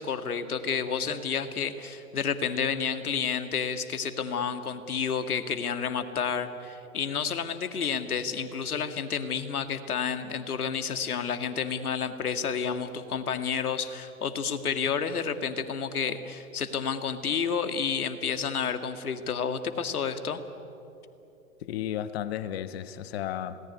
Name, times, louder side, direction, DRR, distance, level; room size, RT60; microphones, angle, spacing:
voice 1, 0.0-20.4, left 6 dB, 75° left, 9 dB, 2.1 m, -30 dB
voice 2, 21.6-23.6, left 11 dB, 45° left, 13 dB, 1.3 m, -33 dB
27.0 x 18.5 x 9.6 m, 3.0 s
hypercardioid pair, 135°, 44 cm